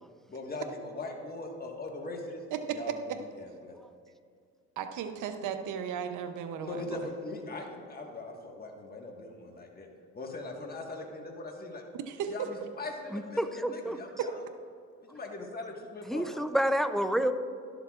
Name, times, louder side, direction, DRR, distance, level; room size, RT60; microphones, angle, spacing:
voice 1, 0.3-2.4 2.7-3.1 3.4-3.8 6.6-9.9 10.1-11.8 12.3-14.5 15.0-16.4, left 2 dB, 30° left, 1 dB, 1.6 m, -40 dB
voice 2, 2.5-3.2 4.8-7.0 12.1-12.3, right 8 dB, 85° right, 7 dB, 0.7 m, -35 dB
voice 3, 13.1-14.0 16.1-17.3, equal, ahead, 9 dB, 0.5 m, -29 dB
12.0 x 12.0 x 2.5 m, 2.3 s
cardioid pair, 90°, 30 cm